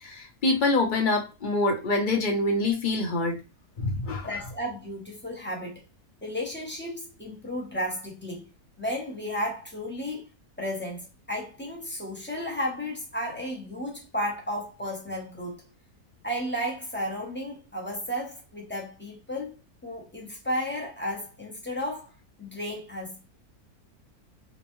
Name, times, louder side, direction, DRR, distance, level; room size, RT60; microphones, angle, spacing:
voice 1, 0.0-3.4 3.8-4.3, left 2 dB, 40° left, 0.8 m, -25 dB
voice 2, 4.3-5.8 6.2-8.5 8.8-10.3 10.6-15.6 16.2-19.6 19.8-23.2, equal, 10° left, 0.6 m, -33 dB
3.8 x 2.2 x 3.0 m
omnidirectional pair, 1.6 m